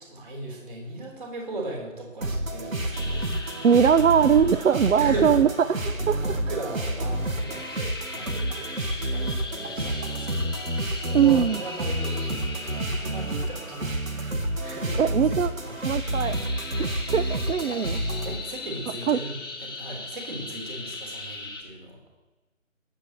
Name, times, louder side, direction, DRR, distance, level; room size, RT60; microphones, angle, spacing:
voice 1, 0.0-3.7 4.9-5.4 5.9-8.7 8.9-9.3 9.6-15.8 18.2-22.0, right 2 dB, 40° right, -1 dB, 4.0 m, -38 dB
sound 1, 2.2-18.3, right 1 dB, 85° right, 1.6 m, -29 dB
sound 2, 2.9-21.6, left 3 dB, 20° left, 0.8 m, -40 dB
voice 2, 3.6-5.5 5.8-6.4 11.1-11.6 15.0-15.5 15.8-16.4 16.8-18.0 19.1-19.2, right 8 dB, 70° right, 14 dB, 0.6 m, -21 dB
21.5 x 8.7 x 3.1 m, 1.1 s
figure-of-eight pair, 160°, 39 cm